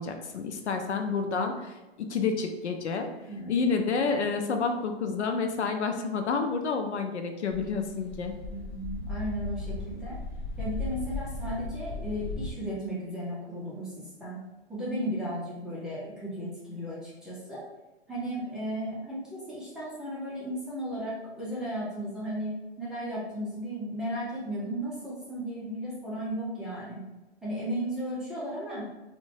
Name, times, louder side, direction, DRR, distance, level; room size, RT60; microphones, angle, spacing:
voice 1, 0.0-3.1 3.5-8.3, left 4 dB, 90° left, 5 dB, 0.5 m, -29 dB
voice 2, 3.3-3.6 8.5-10.2 10.6-13.9 14.2-14.4 14.7-17.6 18.1-27.0 27.4-28.9, equal, ahead, -9 dB, 0.4 m, -35 dB
sound 1, 7.5-12.5, left 3 dB, 45° left, 0.9 m, -36 dB
2.6 x 2.2 x 2.8 m, 1.1 s
hypercardioid pair, 130°, 33 cm